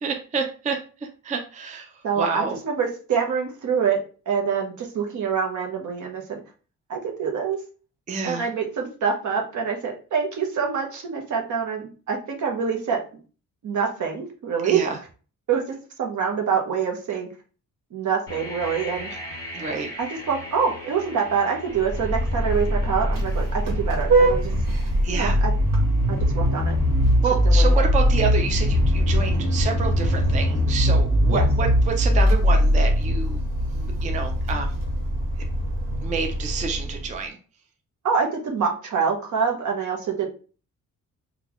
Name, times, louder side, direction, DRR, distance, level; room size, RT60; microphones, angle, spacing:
voice 1, 0.0-1.9 2.2-2.6 8.1-8.5 14.6-15.0 19.5-19.9 25.0-25.4 27.2-33.4 33.8-34.8 36.0-37.4, right 5 dB, 25° right, 3 dB, 0.3 m, -28 dB
voice 2, 2.0-4.0 4.3-6.4 6.9-7.6 8.2-13.0 13.6-14.9 15.5-15.6 16.0-17.3 17.9-19.1 20.0-24.5 25.0-25.5 26.3-26.7 27.4-27.8 31.3-31.4 38.0-40.3, right 6 dB, 65° right, 2 dB, 0.9 m, -25 dB
sound 1, 18.3-30.1, left 1 dB, 10° left, 1.6 m, -41 dB
Vehicle horn car horn honking, 21.7-37.1, equal, 85° right, 1.3 m, -21 dB
3.8 x 2.3 x 2.9 m, 0.37 s
wide cardioid pair, 175°, 32 cm